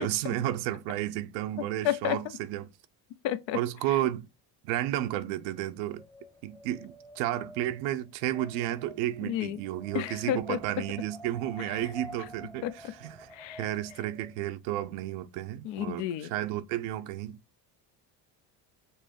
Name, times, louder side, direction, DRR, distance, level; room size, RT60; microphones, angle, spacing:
voice 1, 0.0-2.7 3.5-4.3 4.6-6.0 6.4-13.3 13.6-17.4, right 13 dB, 90° right, 0.6 m, -32 dB
voice 2, 1.8-2.2 3.2-3.6 9.2-9.6 9.9-10.6 12.6-12.7 13.3-13.6 15.6-16.3, left 11 dB, 70° left, 0.6 m, -30 dB
Wind, 5.4-14.4, equal, 10° left, 0.8 m, -49 dB
5.4 x 2.0 x 4.3 m
supercardioid pair, 80°, 47 cm